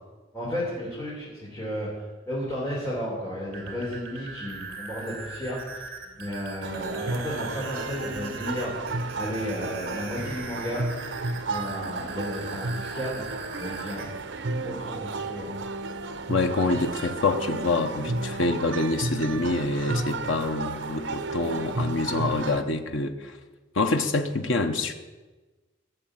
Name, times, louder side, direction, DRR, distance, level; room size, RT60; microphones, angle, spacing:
voice 1, 0.3-5.9 6.2-8.7 9.2-10.9 11.5-13.2 13.6-14.1 14.5-15.5, equal, 15° left, -7 dB, 3.6 m, -33 dB
sound 1, 3.4-14.1, right 4 dB, 50° right, 2.6 m, -40 dB
sound 2, 6.6-22.6, right 3 dB, 70° right, 0.9 m, -33 dB
voice 2, 16.3-23.4 23.7-24.9, left 3 dB, 85° left, 6 dB, 1.0 m, -26 dB
16.5 x 6.8 x 8.9 m, 1.2 s
head